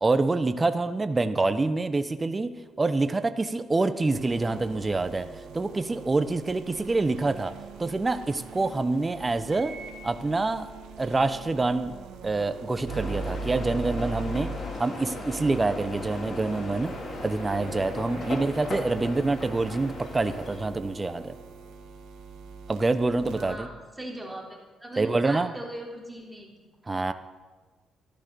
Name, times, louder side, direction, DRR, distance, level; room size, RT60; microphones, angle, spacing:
voice 1, 0.0-2.5 2.8-5.3 5.5-7.5 7.8-9.7 10.0-10.7 11.0-11.9 12.2-14.5 14.8-16.9 17.2-21.3 22.7-23.7 25.0-25.5 26.9-27.1, right 3 dB, 25° right, 10 dB, 0.8 m, -26 dB
sound 1, 4.0-23.6, right 3 dB, 90° right, 1.7 m, -41 dB
sound 2, 12.9-20.6, left 2 dB, 55° left, 3.0 m, -37 dB
voice 2, 23.4-23.7 24.0-26.5, right 1 dB, 5° right, -1 dB, 3.5 m, -39 dB
14.0 x 11.5 x 6.8 m, 1.3 s
cardioid pair, 90°, 0 cm